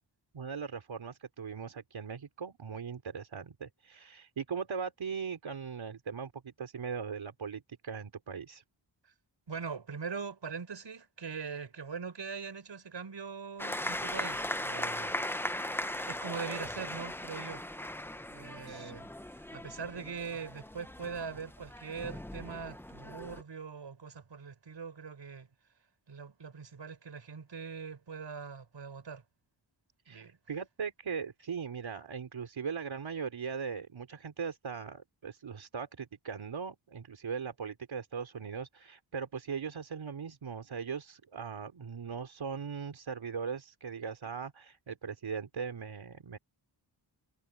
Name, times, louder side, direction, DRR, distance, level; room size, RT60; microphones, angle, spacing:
voice 1, 0.3-8.6 18.7-18.9 30.1-46.4, right 6 dB, 85° right, 3.7 m, -39 dB
voice 2, 9.5-15.1 15.9-17.6 18.3-25.5 26.1-29.2 30.1-30.4, right 5 dB, 65° right, 5.0 m, -42 dB
sound 1, 13.6-23.4, left 1 dB, 5° left, 0.6 m, -38 dB
wide cardioid pair, 100°, 46 cm